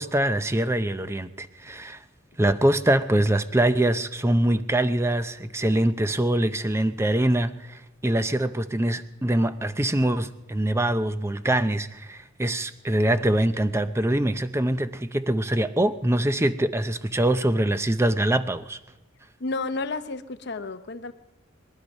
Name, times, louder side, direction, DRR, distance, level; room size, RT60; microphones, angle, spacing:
voice 1, 0.0-2.0 2.4-18.8, right 1 dB, 15° right, 11 dB, 0.6 m, -24 dB
voice 2, 19.4-21.1, left 3 dB, 55° left, 10 dB, 0.8 m, -31 dB
22.5 x 12.0 x 5.4 m, 1.1 s
head